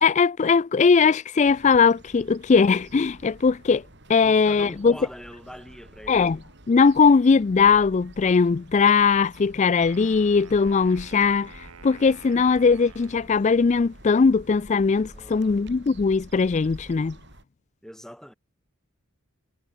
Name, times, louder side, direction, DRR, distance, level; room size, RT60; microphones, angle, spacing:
voice 1, 0.0-3.8 4.1-5.0 6.1-6.4 6.7-11.5 11.8-17.2, left 5 dB, 35° left, 0.3 m, -20 dB
sound 1, 1.4-17.4, right 1 dB, 55° right, 7.3 m, -48 dB
voice 2, 4.2-6.3 15.1-15.6 17.8-18.3, equal, ahead, 6.6 m, -43 dB
Wind instrument woodwind instrument, 9.6-13.6, right 5 dB, 90° right, 1.5 m, -49 dB
head